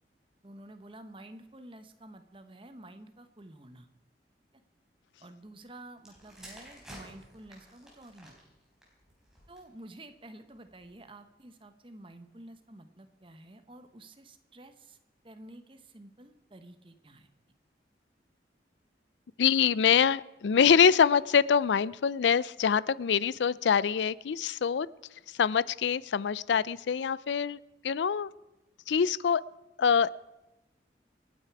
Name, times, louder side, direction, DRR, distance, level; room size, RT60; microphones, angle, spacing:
voice 1, 0.4-3.9 5.2-8.3 9.5-15.0 15.2-17.3, right 1 dB, 30° right, 9 dB, 1.0 m, -50 dB
sound 1, 6.0-9.8 10.6-10.9, right 1 dB, 5° right, 4.0 m, -52 dB
voice 2, 19.4-24.9 25.3-27.6 27.8-28.3 28.9-29.4 29.8-30.1, left 7 dB, 85° left, 20 dB, 0.4 m, -25 dB
26.5 x 9.2 x 4.7 m, 0.98 s
head